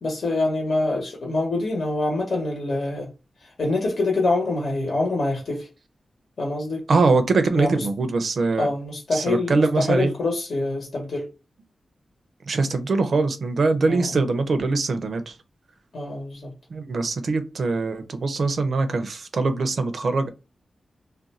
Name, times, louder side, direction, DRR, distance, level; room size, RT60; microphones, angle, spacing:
voice 1, 0.0-3.1 3.4-5.7 6.4-6.8 7.6-7.9 8.6-11.3 13.9-14.2 15.9-16.5, left 2 dB, 65° left, 0.9 m, -25 dB
voice 2, 6.9-8.7 9.1-10.1 12.5-15.3 16.7-20.3, right 3 dB, 65° right, 0.5 m, -22 dB
2.5 x 2.2 x 4.0 m
wide cardioid pair, 95°, 0 cm